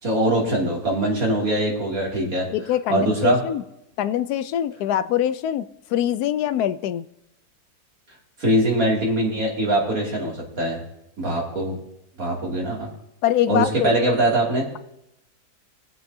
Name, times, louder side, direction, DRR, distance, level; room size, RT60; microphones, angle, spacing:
voice 1, 0.0-2.5 2.9-3.4 8.4-10.8 11.2-11.7 12.2-12.9 13.5-14.7, right 1 dB, 60° right, -3 dB, 3.1 m, -22 dB
voice 2, 2.5-3.6 4.0-7.1 13.2-14.2, left 11 dB, 85° left, 13 dB, 1.1 m, -24 dB
23.0 x 7.7 x 2.7 m, 0.84 s
omnidirectional pair, 1.6 m